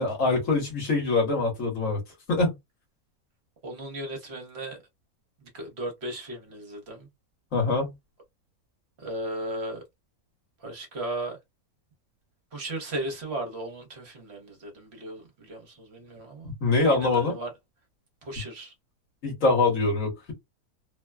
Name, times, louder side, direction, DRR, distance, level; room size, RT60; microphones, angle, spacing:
voice 1, 0.0-2.0 2.3-2.5 7.5-7.9 16.4-17.3 19.2-20.3, left 3 dB, 60° left, 1.6 m, -24 dB
voice 2, 3.6-4.8 5.4-7.1 9.0-9.8 10.6-11.4 12.5-16.5 16.9-17.5 18.2-18.7, right 1 dB, 50° right, 1.1 m, -36 dB
3.1 x 2.2 x 2.2 m
omnidirectional pair, 1.6 m